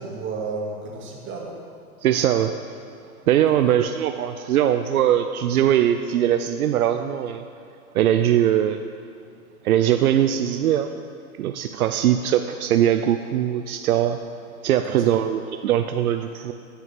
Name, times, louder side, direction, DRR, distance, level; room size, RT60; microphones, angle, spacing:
voice 1, 0.0-1.6 3.5-3.7 14.8-15.2, right 4 dB, 25° right, -2 dB, 2.1 m, -33 dB
voice 2, 2.0-2.6 3.3-7.5 7.9-8.8 9.6-10.9 11.4-14.2 14.6-16.5, right 11 dB, 75° right, 8 dB, 0.6 m, -21 dB
11.0 x 5.8 x 5.9 m, 2.4 s
hypercardioid pair, 115°, 44 cm